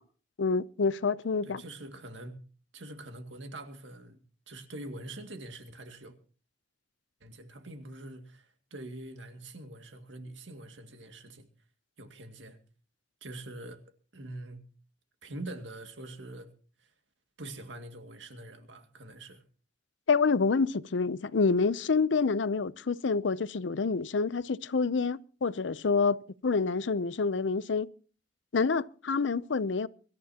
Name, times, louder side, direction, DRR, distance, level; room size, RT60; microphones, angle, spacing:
voice 1, 0.4-1.6 20.1-27.9 28.5-29.9, left 4 dB, 80° left, 0.6 m, -27 dB
voice 2, 1.4-2.3 2.7-4.2 4.5-6.2 7.2-11.5 12.0-12.6 13.2-13.8 14.1-14.6 15.2-16.5 16.8-16.9 17.4-19.4, right 1 dB, 80° right, 2.2 m, -44 dB
24.5 x 13.5 x 2.9 m
head